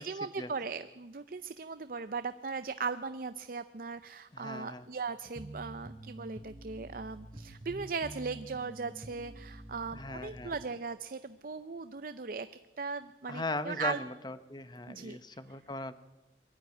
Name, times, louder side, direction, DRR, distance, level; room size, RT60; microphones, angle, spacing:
voice 1, 0.0-12.5 12.8-14.0 14.9-15.2, right 4 dB, 50° right, 12 dB, 0.6 m, -38 dB
voice 2, 4.3-4.9 9.9-10.5 13.3-15.9, left 2 dB, 25° left, 12 dB, 0.9 m, -39 dB
sound 1, 5.3-10.7, right 1 dB, 25° right, 1.0 m, -48 dB
22.5 x 12.5 x 9.6 m, 1.1 s
head